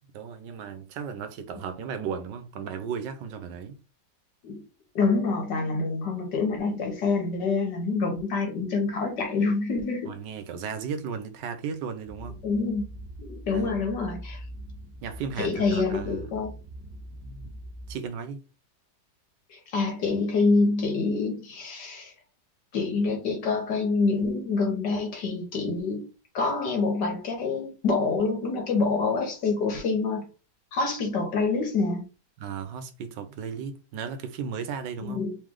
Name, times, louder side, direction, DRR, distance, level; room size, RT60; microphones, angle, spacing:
voice 1, 0.1-3.8 10.1-12.4 13.5-13.8 15.0-16.3 17.2-17.5 17.9-18.4 32.4-35.2, right 6 dB, 90° right, 1.4 m, -35 dB
voice 2, 5.0-10.1 12.4-12.9 13.2-14.4 15.4-16.5 19.5-22.1 22.7-26.1 26.3-30.3 30.7-32.1 35.1-35.4, left 4 dB, 75° left, 1.8 m, -26 dB
sound 1, 12.0-17.9, equal, 65° right, 1.3 m, -42 dB
3.7 x 3.2 x 3.7 m
omnidirectional pair, 1.9 m